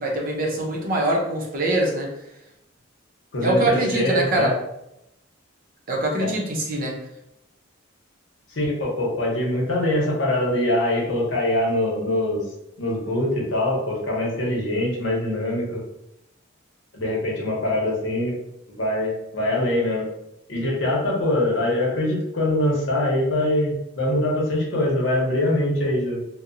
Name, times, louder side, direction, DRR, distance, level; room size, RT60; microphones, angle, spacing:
voice 1, 0.0-2.1 3.4-4.5 5.9-7.0, right 1 dB, 45° right, -1 dB, 0.6 m, -23 dB
voice 2, 3.3-4.5 6.2-6.3 8.5-12.5 12.8-15.8 16.9-18.3 18.8-20.1 20.5-26.2, left 1 dB, 70° left, -3 dB, 0.8 m, -23 dB
2.8 x 2.0 x 2.5 m, 0.85 s
head